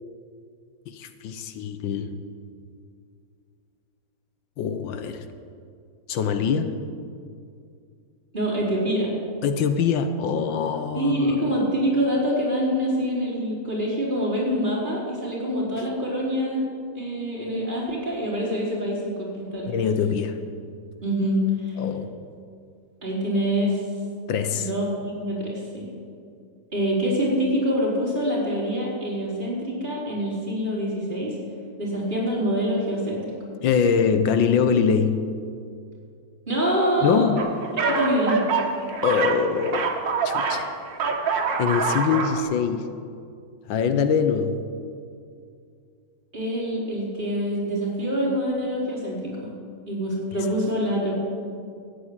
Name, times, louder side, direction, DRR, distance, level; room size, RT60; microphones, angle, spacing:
voice 1, 0.9-2.2 4.6-5.3 6.1-6.8 9.4-11.4 19.7-20.4 21.8-22.1 24.3-24.7 33.6-35.3 37.0-37.5 39.0-40.0 40.2-40.7 41.6-42.9 43.7-44.6, left 6 dB, 80° left, 9 dB, 1.6 m, -23 dB
voice 2, 8.3-9.1 10.9-16.6 16.9-19.7 21.0-21.8 23.0-23.8 24.5-25.9 26.7-31.3 31.8-33.2 36.5-37.3 37.8-38.4 46.3-49.5 49.9-51.1, equal, 25° right, -6 dB, 4.5 m, -25 dB
sound 1, 37.4-40.7 40.9-42.4, right 5 dB, 75° right, 2.1 m, -25 dB
14.5 x 8.7 x 9.5 m, 2.3 s
omnidirectional pair, 2.0 m